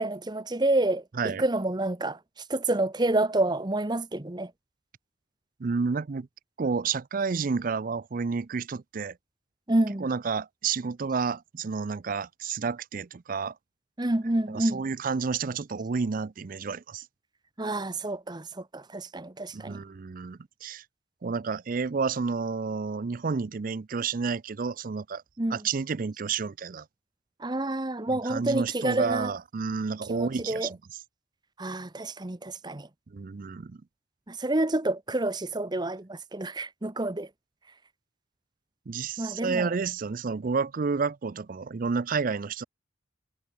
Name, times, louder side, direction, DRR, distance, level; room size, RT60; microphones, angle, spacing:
voice 1, 0.0-2.2 2.5-4.5 9.7-10.1 14.0-14.8 17.6-19.8 25.4-25.6 27.4-29.3 30.1-30.7 31.6-32.9 34.3-37.3 39.2-39.7, right 2 dB, 25° right, 0.9 m, -28 dB
voice 2, 5.6-6.3 6.6-9.2 10.0-13.5 14.5-17.0 19.5-20.8 21.2-25.2 25.5-26.8 28.1-30.8 33.1-33.8 38.9-42.6, right 5 dB, 45° right, 0.5 m, -30 dB
head